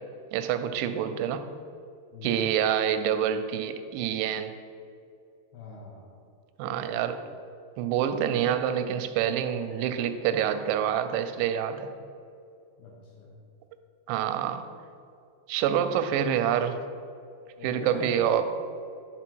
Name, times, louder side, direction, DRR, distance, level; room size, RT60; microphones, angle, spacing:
voice 1, 0.3-1.4 2.2-4.5 6.6-7.2 7.8-11.9 14.1-14.6 15.5-16.8 17.6-18.4, right 9 dB, 90° right, 10 dB, 2.9 m, -27 dB
voice 2, 2.1-2.6 5.5-6.1 6.6-7.0 12.8-13.3 17.6-18.4, left 3 dB, 75° left, -3 dB, 2.9 m, -43 dB
11.0 x 4.0 x 4.5 m, 2.4 s
omnidirectional pair, 5.2 m